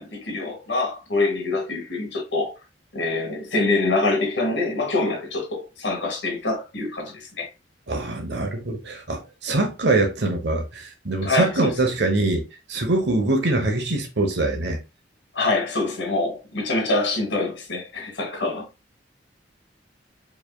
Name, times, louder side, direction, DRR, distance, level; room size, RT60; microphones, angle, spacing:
voice 1, 0.0-2.5 2.9-7.5 11.2-11.8 15.3-18.6, left 2 dB, 85° left, 1.8 m, -25 dB
voice 2, 7.9-14.8, right 2 dB, 70° right, 1.0 m, -23 dB
4.8 x 3.4 x 2.3 m
head